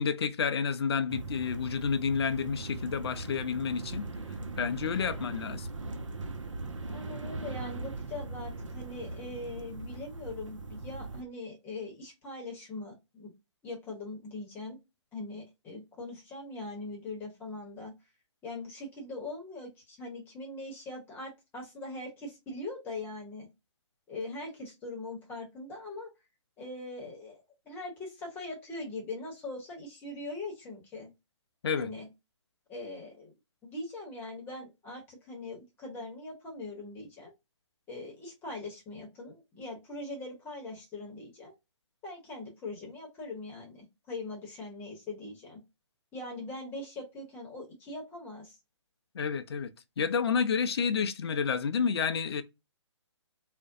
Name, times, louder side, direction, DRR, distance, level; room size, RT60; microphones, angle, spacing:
voice 1, 0.0-4.1 4.6-5.7 31.6-31.9 49.1-49.7 50.0-52.4, left 6 dB, 55° left, 0.4 m, -30 dB
sound 1, 1.1-11.2, right 3 dB, 80° right, 0.5 m, -40 dB
voice 2, 6.9-13.3 13.6-14.8 15.1-17.9 18.4-23.5 24.1-26.1 26.6-31.1 31.8-32.1 32.7-33.3 33.6-37.3 37.9-41.5 42.0-45.6 46.1-48.6, left 2 dB, 15° left, 0.8 m, -41 dB
2.5 x 2.1 x 2.5 m
figure-of-eight pair, 135°, 16 cm